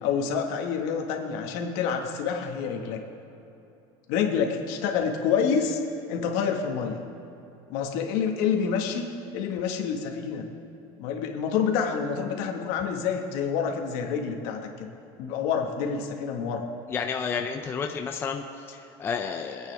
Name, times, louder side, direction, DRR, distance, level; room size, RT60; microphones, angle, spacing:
voice 1, 0.0-3.0 4.1-5.8 6.1-7.0 7.7-9.0 9.3-10.5 11.0-14.9 15.2-16.6, left 6 dB, 70° left, 3 dB, 1.7 m, -27 dB
voice 2, 16.9-19.7, left 6 dB, 20° left, 3 dB, 0.6 m, -31 dB
24.5 x 9.0 x 3.5 m, 2.9 s
cardioid pair, 165°, 12 cm